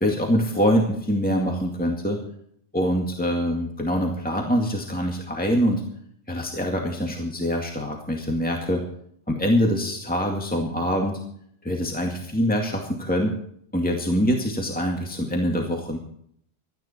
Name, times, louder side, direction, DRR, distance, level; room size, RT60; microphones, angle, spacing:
voice 1, 0.0-2.2 2.7-5.8 6.3-8.8 9.3-11.2 11.6-13.3 13.7-16.0, equal, 10° left, 1 dB, 2.2 m, -24 dB
17.0 x 13.0 x 4.4 m, 0.66 s
omnidirectional pair, 1.1 m